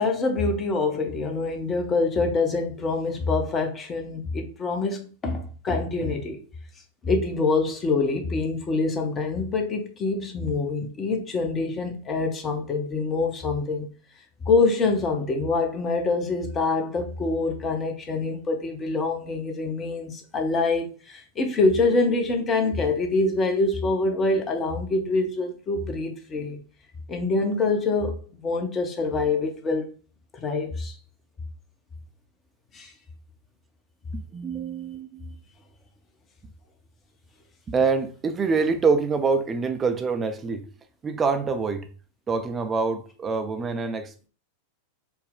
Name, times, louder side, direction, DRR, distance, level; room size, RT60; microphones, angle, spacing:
voice 1, 0.0-6.4 7.0-13.9 14.4-26.6 27.1-29.9 30.3-30.9 32.7-32.9, left 3 dB, 25° left, 0.8 m, -25 dB
voice 2, 34.1-35.3 37.7-40.7 41.0-41.9 42.3-44.3, right 4 dB, 20° right, 0.5 m, -25 dB
4.2 x 2.1 x 3.7 m
figure-of-eight pair, 90°, 0 cm